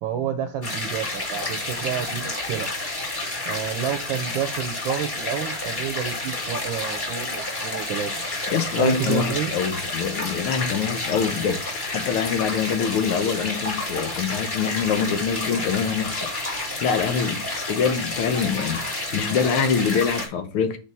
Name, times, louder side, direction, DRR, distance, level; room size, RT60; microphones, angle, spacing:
voice 1, 0.0-2.7 3.5-8.1 8.8-9.5, right 9 dB, 70° right, 1.3 m, -29 dB
sound 1, 0.6-20.3, left 2 dB, 20° left, 2.2 m, -30 dB
voice 2, 8.5-16.3 16.8-20.8, left 6 dB, 85° left, 1.7 m, -25 dB
5.3 x 4.3 x 5.9 m
omnidirectional pair, 2.4 m